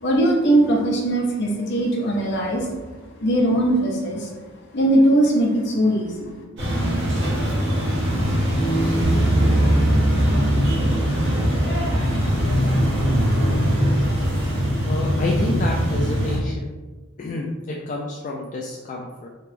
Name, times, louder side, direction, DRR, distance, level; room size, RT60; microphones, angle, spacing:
voice 1, 0.0-2.7 3.2-4.3 4.7-6.3, right 1 dB, 60° left, -1 dB, 0.8 m, -20 dB
sound 1, 6.6-16.4, equal, 60° right, 1.3 m, -21 dB
sound 2, 9.0-14.1, right 1 dB, 85° right, 0.4 m, -24 dB
voice 2, 14.8-16.8 17.2-19.3, left 2 dB, 40° left, -2 dB, 0.3 m, -29 dB
3.3 x 2.9 x 3.3 m, 1.2 s
head